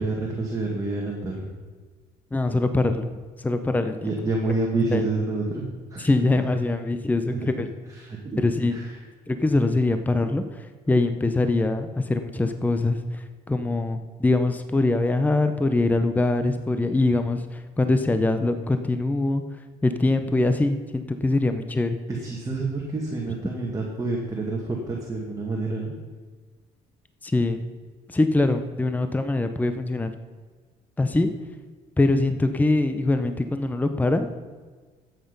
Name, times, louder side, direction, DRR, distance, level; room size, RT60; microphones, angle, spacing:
voice 1, 0.0-1.5 4.0-6.5 7.3-7.7 7.9-8.9 22.1-26.0, right 3 dB, 20° right, -2 dB, 2.1 m, -28 dB
voice 2, 2.3-3.1 3.4-4.1 4.5-4.6 4.9-5.0 6.0-7.7 8.4-8.8 9.3-19.4 19.8-22.0 27.2-27.6 28.1-30.1 31.0-31.3 32.0-34.3, left 2 dB, 10° left, 8 dB, 0.7 m, -23 dB
12.5 x 8.1 x 5.4 m, 1.4 s
cardioid pair, 110°, 17 cm